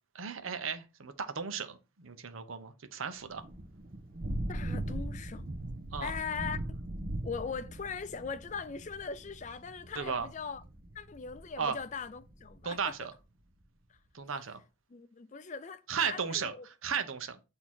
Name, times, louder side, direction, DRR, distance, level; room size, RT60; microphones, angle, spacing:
voice 1, 0.1-3.4 5.9-6.1 10.0-10.3 11.6-11.8 12.6-13.1 14.1-14.6 15.9-16.5 16.8-17.4, right 6 dB, 80° right, 0.8 m, -35 dB
Thunder / Rain, 3.3-12.8, right 1 dB, 45° right, 0.8 m, -40 dB
voice 2, 4.5-5.5 6.0-6.6 7.2-10.6 10.9-12.9 14.9-16.7, left 5 dB, 35° left, 0.4 m, -40 dB
8.3 x 2.8 x 4.4 m
head